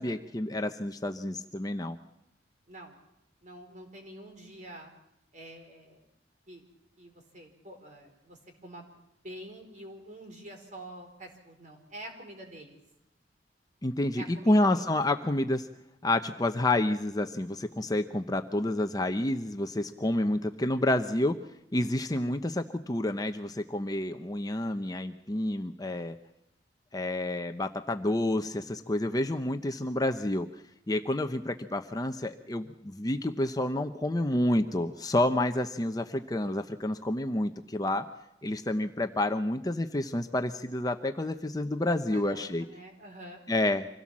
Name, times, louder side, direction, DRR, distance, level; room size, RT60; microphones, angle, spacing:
voice 1, 0.0-2.0 13.8-15.7 16.0-21.4 21.7-26.2 26.9-30.5 30.9-38.1 38.4-42.6 43.5-43.9, left 1 dB, 20° left, 7 dB, 0.8 m, -29 dB
voice 2, 3.4-4.9 5.3-6.1 6.5-6.6 7.0-8.9 9.2-12.8 14.1-14.9 42.1-43.4, right 1 dB, 45° right, 4 dB, 4.5 m, -47 dB
25.5 x 17.0 x 7.4 m, 0.84 s
head